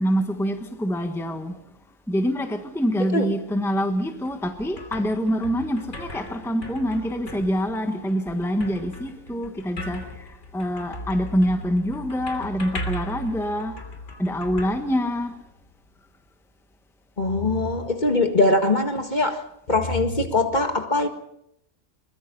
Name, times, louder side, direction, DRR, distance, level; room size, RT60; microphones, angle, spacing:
voice 1, 0.0-1.5 2.1-10.3 10.5-13.8 14.2-15.3, equal, ahead, 1.3 m, -25 dB
sound 1, 4.1-15.6, equal, 70° left, 3.4 m, -38 dB
voice 2, 17.2-19.4 19.7-21.1, left 2 dB, 35° left, 1.9 m, -22 dB
23.0 x 21.5 x 5.4 m
omnidirectional pair, 1.3 m